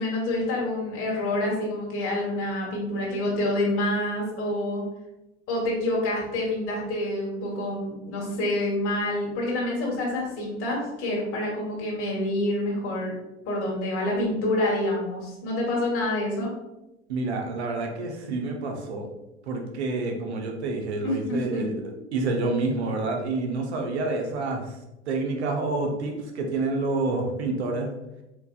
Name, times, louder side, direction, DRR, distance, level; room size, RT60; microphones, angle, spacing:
voice 1, 0.0-4.8 5.5-13.1 13.4-16.5 21.0-21.6, left 1 dB, 40° left, -3 dB, 1.5 m, -27 dB
voice 2, 17.1-19.1 19.4-21.8 22.1-24.8 25.1-27.9, right 3 dB, 70° right, 2 dB, 0.9 m, -28 dB
4.4 x 4.0 x 2.4 m, 0.95 s
figure-of-eight pair, 75°, 34 cm